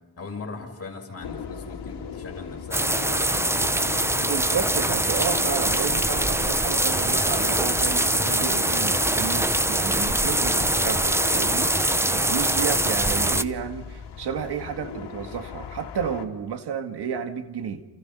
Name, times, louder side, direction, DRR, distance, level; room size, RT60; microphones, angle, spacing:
voice 1, 0.2-3.6 12.0-12.3, left 4 dB, 35° left, 1 dB, 6.4 m, -40 dB
sound 1, 1.2-16.2, left 6 dB, 75° left, 3.3 m, -38 dB
sound 2, 2.7-13.4, right 1 dB, 5° right, 0.8 m, -23 dB
voice 2, 3.6-17.8, right 7 dB, 70° right, 7 dB, 2.0 m, -32 dB
29.0 x 28.5 x 5.6 m, 1.2 s
cardioid pair, 130°, 40 cm